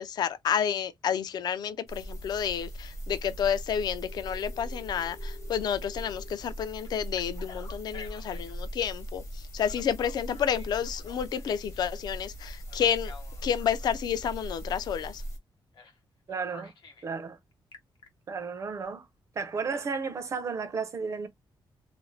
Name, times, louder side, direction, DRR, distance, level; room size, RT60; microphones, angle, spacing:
voice 1, 0.0-13.1 13.4-15.2, left 8 dB, 55° left, 0.4 m, -30 dB
sound 1, 1.9-15.4, equal, 35° left, 0.7 m, -40 dB
Telephone, 4.0-6.3 6.8-8.6 9.6-11.8 12.7-14.0 15.7-16.0 16.3-17.1 17.5-18.1, left 5 dB, 80° left, 0.8 m, -50 dB
voice 2, 16.3-16.7 17.0-17.4 18.3-19.0 19.4-21.3, right 5 dB, 35° right, 0.4 m, -33 dB
2.5 x 2.0 x 3.1 m
wide cardioid pair, 175°, 8 cm